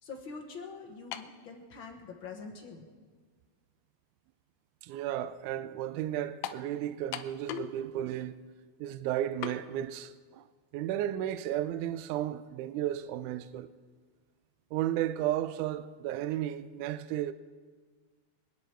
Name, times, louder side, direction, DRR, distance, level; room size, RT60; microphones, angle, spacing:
voice 1, 0.0-2.8, left 4 dB, 55° left, 1.5 m, -44 dB
sound 1, 1.1-1.4 2.3-2.4 6.4-6.7 7.1-7.8 8.1-8.2 9.4-9.6, left 10 dB, 85° left, 1.5 m, -38 dB
voice 2, 4.8-8.3 8.8-10.5 10.7-13.7 14.7-17.3, right 12 dB, 80° right, 1.8 m, -33 dB
25.5 x 9.5 x 4.5 m
omnidirectional pair, 3.9 m